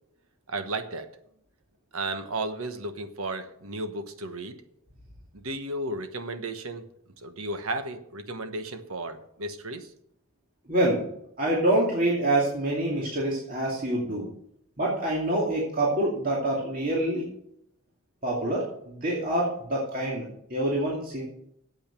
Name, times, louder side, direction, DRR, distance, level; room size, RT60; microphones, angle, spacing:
voice 1, 0.5-1.1 1.9-4.6 5.3-6.9 7.2-9.9, right 2 dB, 85° right, 8 dB, 1.2 m, -34 dB
voice 2, 10.7-11.0 11.4-14.3 14.8-17.3 18.2-21.2, right 1 dB, 40° right, -4 dB, 2.5 m, -26 dB
8.9 x 8.2 x 6.9 m, 0.73 s
head